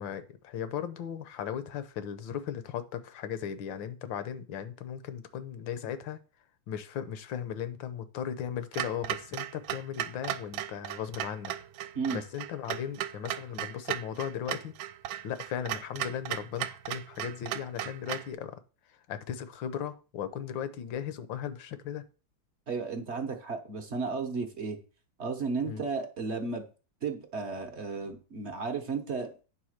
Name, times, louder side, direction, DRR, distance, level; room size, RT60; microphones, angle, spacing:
voice 1, 0.0-6.2 6.7-11.5 12.1-14.7 15.2-18.6 19.1-22.0 25.7-25.8, left 9 dB, 75° left, 12 dB, 1.5 m, -37 dB
Clock, 8.7-18.3, right 12 dB, 80° right, 1.3 m, -36 dB
voice 2, 22.7-24.8 25.2-26.6 27.0-29.3, right 4 dB, 45° right, 5 dB, 0.9 m, -33 dB
9.2 x 3.8 x 6.4 m, 0.35 s
omnidirectional pair, 2.2 m